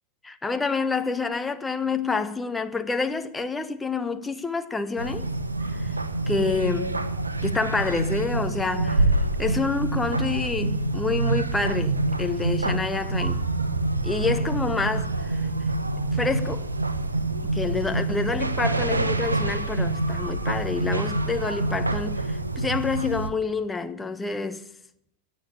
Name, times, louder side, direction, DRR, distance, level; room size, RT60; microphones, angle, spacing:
voice 1, 0.2-5.3 5.7-5.9 6.3-7.1 7.4-9.1 9.4-13.5 14.0-15.5 16.1-16.7 17.5-24.6, left 4 dB, 10° left, 1.1 m, -28 dB
sound 1, 5.0-23.3, right 2 dB, 80° right, 1.1 m, -26 dB
16.5 x 7.9 x 9.9 m
figure-of-eight pair, 90°, 0 cm